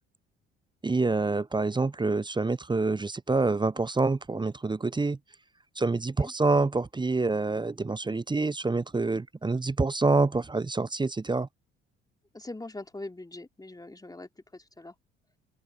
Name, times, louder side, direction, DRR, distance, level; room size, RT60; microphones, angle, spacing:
voice 1, 0.8-5.2 5.8-11.5, right 3 dB, 15° right, 0.9 m, -27 dB
voice 2, 5.9-6.3 12.3-15.0, left 2 dB, 10° left, 3.4 m, -43 dB
open air
figure-of-eight pair, 50°, 33 cm